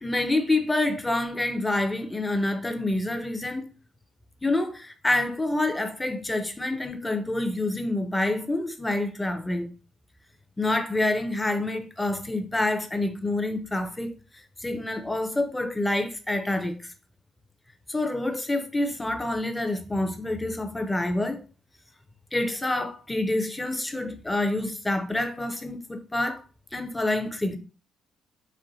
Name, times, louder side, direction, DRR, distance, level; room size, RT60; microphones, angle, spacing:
voice 1, 0.0-3.7 4.4-9.7 10.6-14.2 14.6-16.9 17.9-21.4 22.3-26.4 26.7-27.6, left 2 dB, 10° left, 0.6 m, -27 dB
4.3 x 3.0 x 3.9 m
cardioid pair, 140°, 0 cm